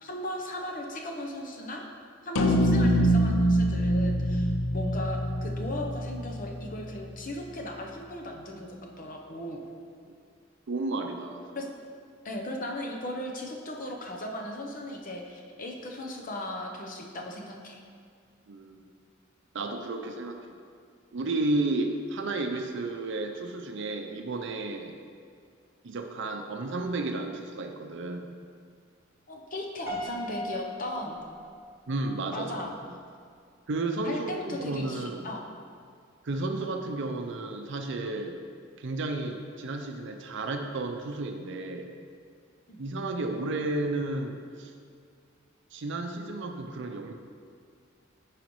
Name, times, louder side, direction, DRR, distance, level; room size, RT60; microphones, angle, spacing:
voice 1, 0.0-1.8 2.2-9.6 11.5-11.7 12.2-17.8 29.3-31.2 32.3-32.7 34.0-35.4 42.7-42.8, left 1 dB, 40° left, 1 dB, 0.8 m, -37 dB
sound 1, 2.4-6.8, equal, 75° left, 0.5 m, -25 dB
voice 2, 10.7-11.4 18.5-18.8 19.5-20.6 21.1-24.9 25.8-28.3 31.9-32.5 33.7-35.3 36.2-38.4 38.8-41.9 42.8-44.7 45.7-47.1, right 2 dB, 60° right, 4 dB, 0.5 m, -32 dB
Piano, 29.9-32.1, equal, 15° right, 1.4 m, -38 dB
9.2 x 4.9 x 3.1 m, 2.2 s
head